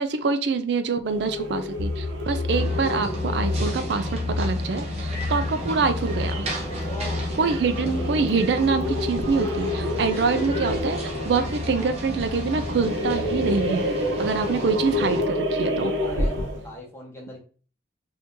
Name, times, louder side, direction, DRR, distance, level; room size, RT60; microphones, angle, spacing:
voice 1, 0.0-6.5 7.4-13.9 14.2-15.9, right 4 dB, 60° right, 9 dB, 0.4 m, -25 dB
sound 1, 1.0-16.7, left 1 dB, 85° right, 0.8 m, -30 dB
sound 2, 1.8-13.7, left 3 dB, 70° left, 0.4 m, -32 dB
sound 3, 2.5-15.2, right 1 dB, 35° right, 0.8 m, -34 dB
voice 2, 6.9-7.3 16.0-16.4 16.6-17.4, left 1 dB, 15° left, -2 dB, 1.0 m, -38 dB
2.8 x 2.7 x 3.5 m, 0.39 s
head